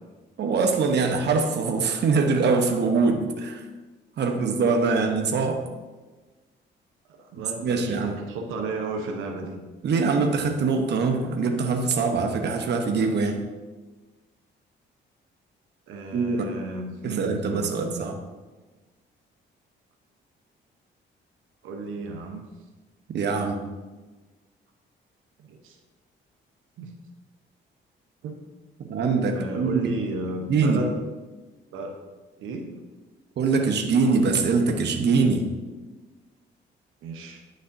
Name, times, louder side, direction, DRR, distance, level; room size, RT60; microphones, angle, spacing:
voice 1, 0.4-3.6 4.2-5.6 7.6-8.2 9.8-13.4 16.1-16.5 17.0-18.2 23.1-23.6 28.9-29.9 30.5-30.8 33.4-35.5, right 4 dB, 60° right, 3 dB, 0.9 m, -23 dB
voice 2, 7.1-9.6 15.9-18.1 21.6-22.4 25.4-25.8 26.8-26.9 28.2-28.4 29.3-31.0 31.7-32.0 32.4-32.8 37.0-37.4, right 3 dB, 85° right, 2 dB, 0.9 m, -34 dB
9.5 x 6.4 x 2.6 m, 1.3 s
cardioid pair, 90°, 20 cm